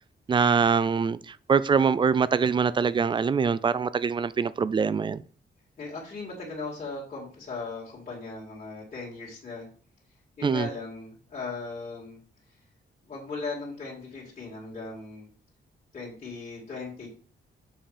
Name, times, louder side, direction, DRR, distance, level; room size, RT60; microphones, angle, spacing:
voice 1, 0.3-5.2 10.4-10.7, right 6 dB, 25° right, 0.3 m, -24 dB
voice 2, 5.8-9.7 10.4-12.2 13.1-15.3 15.9-17.1, left 3 dB, 40° left, 2.6 m, -38 dB
7.1 x 5.6 x 5.0 m
wide cardioid pair, 175°, 18 cm